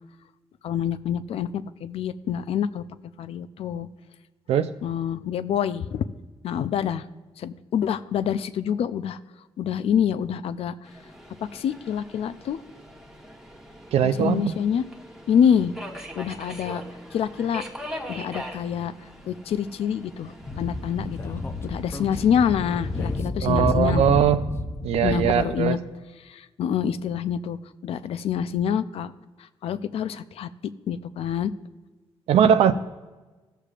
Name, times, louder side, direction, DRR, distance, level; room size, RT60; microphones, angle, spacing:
voice 1, 0.6-2.8 3.2-3.9 4.8-6.0 6.4-7.0 7.4-9.2 9.6-10.7 11.5-12.6 14.0-14.8 15.3-15.7 16.2-16.8 17.1-17.6 18.1-18.9 19.3-24.0 25.0-25.8 26.3-27.6 27.8-29.1 29.6-30.5 30.9-31.5, left 8 dB, 70° left, 13 dB, 0.4 m, -26 dB
Subway metro underground, 10.8-23.2, equal, 5° right, 1.1 m, -42 dB
voice 2, 13.9-14.5 23.4-24.5 24.8-25.8 32.3-32.7, right 8 dB, 80° right, 11 dB, 0.5 m, -20 dB
Speech / Wind, 20.4-25.4, left 3 dB, 25° left, 0.6 m, -30 dB
15.0 x 6.6 x 2.4 m, 1.2 s
cardioid pair, 95°, 10 cm